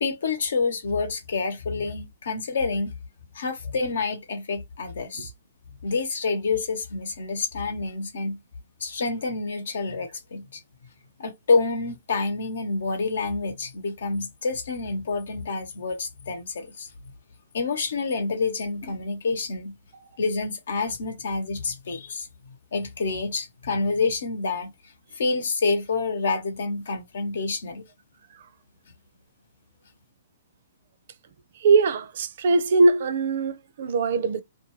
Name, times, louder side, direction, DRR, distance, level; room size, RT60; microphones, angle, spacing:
voice 1, 0.0-2.9 3.3-5.3 5.8-8.4 8.8-10.6 11.2-16.9 17.5-19.7 20.2-22.3 22.7-24.7 25.1-27.9, left 4 dB, 80° left, 0.9 m, -28 dB
voice 2, 31.6-34.4, right 3 dB, 60° right, 0.5 m, -21 dB
2.6 x 2.3 x 3.0 m
hypercardioid pair, 150°, 0 cm